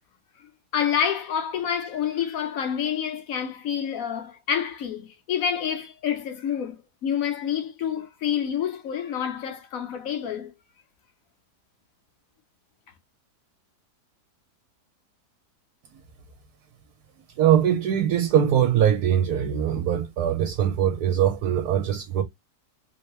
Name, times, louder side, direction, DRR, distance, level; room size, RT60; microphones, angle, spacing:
voice 1, 0.7-10.5, left 8 dB, 60° left, 1.2 m, -28 dB
voice 2, 17.4-22.2, right 10 dB, 70° right, 1.1 m, -22 dB
3.2 x 2.7 x 3.1 m
omnidirectional pair, 1.8 m